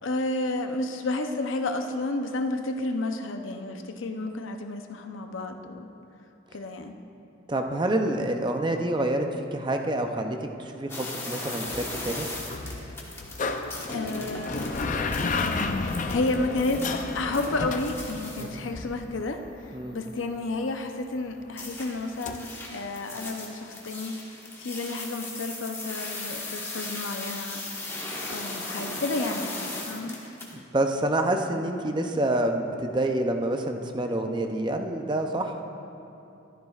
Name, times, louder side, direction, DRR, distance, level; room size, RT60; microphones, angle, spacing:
voice 1, 0.0-5.9 6.5-6.9 13.8-14.8 15.8-19.4 19.9-24.1 24.6-27.6 28.3-29.5 29.9-30.2, left 2 dB, 80° left, 5 dB, 0.7 m, -31 dB
voice 2, 7.5-12.3 18.4-18.7 19.7-20.0 30.5-35.6, right 1 dB, 25° right, 4 dB, 0.5 m, -27 dB
sound 1, 10.9-18.4 21.6-30.5, left 2 dB, 15° left, 1.2 m, -38 dB
sound 2, 11.7-19.3 22.3-22.4, left 3 dB, 40° left, 0.5 m, -32 dB
14.5 x 12.5 x 2.4 m, 2.8 s
head